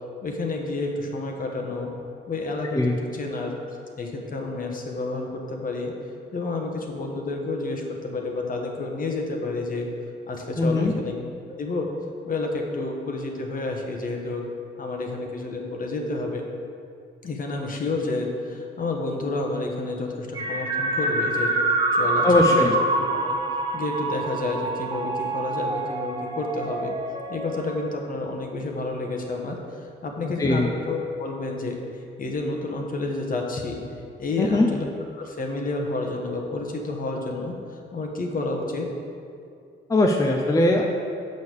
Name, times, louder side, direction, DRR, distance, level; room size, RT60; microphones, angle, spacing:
voice 1, 0.2-1.9 2.3-3.5 4.0-5.9 6.3-9.9 10.3-11.1 11.5-11.9 12.2-14.5 14.8-16.4 17.2-21.5 21.9-23.4 23.7-26.9 27.3-31.8 32.2-33.8 34.2-34.9 35.2-37.6 37.9-38.9, left 2 dB, 45° left, 2 dB, 1.2 m, -30 dB
voice 2, 10.6-10.9 22.2-22.7 30.4-30.7 34.4-34.7 39.9-40.8, left 2 dB, 15° left, 1 dB, 0.6 m, -20 dB
sound 1, 20.3-27.9, right 2 dB, 20° right, 1.1 m, -26 dB
6.5 x 5.3 x 6.6 m, 2.4 s
cardioid pair, 90°, 20 cm